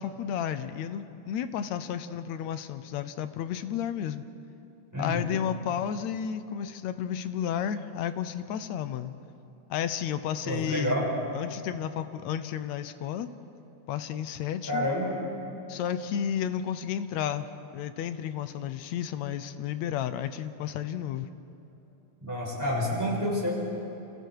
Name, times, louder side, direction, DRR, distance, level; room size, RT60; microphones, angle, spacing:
voice 1, 0.0-4.2 5.0-9.1 9.7-11.0 11.3-13.3 13.9-14.9 15.7-17.5 17.7-21.3, left 9 dB, 70° left, 12 dB, 1.9 m, -32 dB
voice 2, 4.9-5.2 10.4-11.1 14.7-15.1 22.2-23.5, equal, 5° right, -4 dB, 6.1 m, -28 dB
29.0 x 27.0 x 4.8 m, 3.0 s
omnidirectional pair, 3.6 m